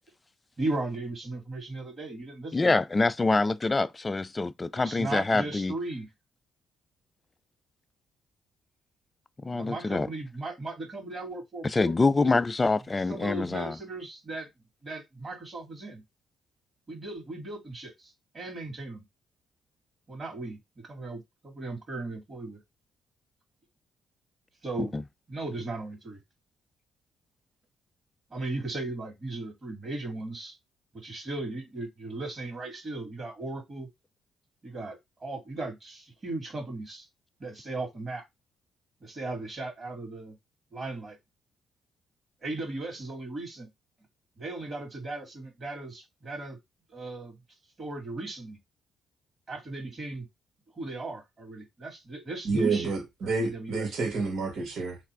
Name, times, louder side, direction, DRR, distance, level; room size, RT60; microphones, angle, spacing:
voice 1, 0.6-2.8 4.7-6.1 9.5-11.9 12.2-12.4 13.1-14.5 14.8-16.0 16.9-19.0 20.1-22.6 24.6-25.0 25.3-26.2 28.3-30.5 31.0-33.9 34.6-37.1 37.4-38.2 39.0-40.4 40.7-41.2 42.4-43.7 44.4-46.6 46.9-47.4 47.8-48.6 49.5-50.3 50.8-53.0 53.2-53.9, right 2 dB, 35° right, 2.2 m, -37 dB
voice 2, 2.5-5.7 9.4-10.1 11.6-13.8 24.8-25.0, left 3 dB, 25° left, 0.3 m, -25 dB
voice 3, 52.4-55.0, right 4 dB, 70° right, 1.8 m, -29 dB
3.3 x 2.4 x 4.4 m
cardioid pair, 90°, 0 cm